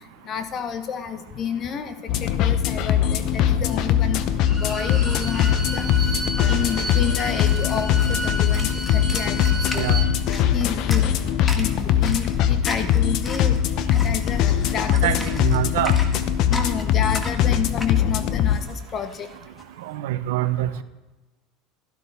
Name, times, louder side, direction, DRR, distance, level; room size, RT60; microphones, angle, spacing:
voice 1, 0.2-9.9 10.5-11.1 11.5-13.6 13.9-15.3 16.5-19.3, left 7 dB, 40° left, 9 dB, 1.2 m, -30 dB
sound 1, 2.1-18.6, left 9 dB, 55° left, 0.8 m, -21 dB
Bowed string instrument, 4.4-10.1, right 1 dB, ahead, 3.7 m, -32 dB
sound 2, 5.8-19.6, left 2 dB, 20° left, 1.7 m, -38 dB
voice 2, 14.9-16.0 19.8-20.8, right 13 dB, 80° right, 12 dB, 0.7 m, -25 dB
13.0 x 12.0 x 3.5 m, 1.1 s
supercardioid pair, 105°, 0 cm